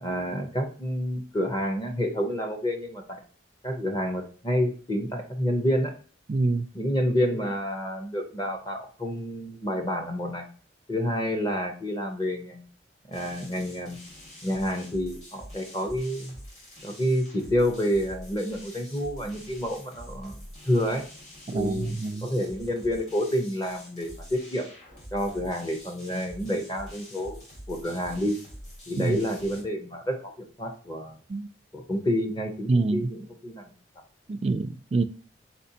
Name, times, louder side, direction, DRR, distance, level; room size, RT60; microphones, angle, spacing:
voice 1, 0.0-3.2 3.6-5.9 6.7-10.5 10.9-12.6 13.1-14.0 14.4-16.3 16.8-20.3 20.7-21.0 21.5-24.7 25.1-27.4 27.7-28.4 28.9-31.2 31.7-33.6, equal, 20° left, 0.7 m, -29 dB
voice 2, 6.3-6.7 21.5-22.3 29.0-29.2 31.3-31.5 32.7-33.1 34.3-35.0, right 3 dB, 35° right, 0.3 m, -26 dB
sound 1, 13.1-29.6, equal, 40° left, 2.2 m, -46 dB
4.3 x 4.3 x 2.7 m
head